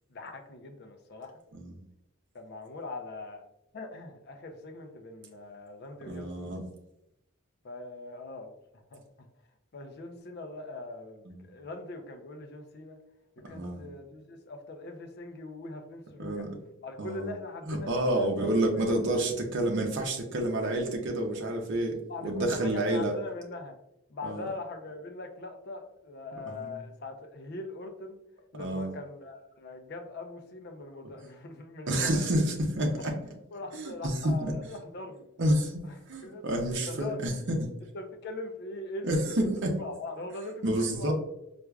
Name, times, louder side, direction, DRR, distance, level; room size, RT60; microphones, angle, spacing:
voice 1, 0.1-1.4 2.3-3.5 3.7-6.6 7.6-8.5 8.9-9.3 9.7-13.0 13.5-16.5 16.8-18.8 22.1-23.8 24.1-28.2 28.5-32.4 32.9-33.1 33.5-35.3 35.8-36.6 36.9-37.2 37.9-39.2 39.8-41.1, left 2 dB, 50° left, 5 dB, 0.5 m, -41 dB
voice 2, 6.1-6.6 13.4-13.8 16.2-16.5 17.0-17.3 17.7-22.0 22.2-23.1 24.2-24.5 26.5-26.6 28.6-28.9 31.9-33.1 33.7-34.5 35.4-35.8 36.1-37.7 39.0-39.7 40.6-41.1, right 1 dB, 60° right, 1 dB, 0.6 m, -29 dB
4.5 x 2.4 x 2.3 m, 0.85 s
head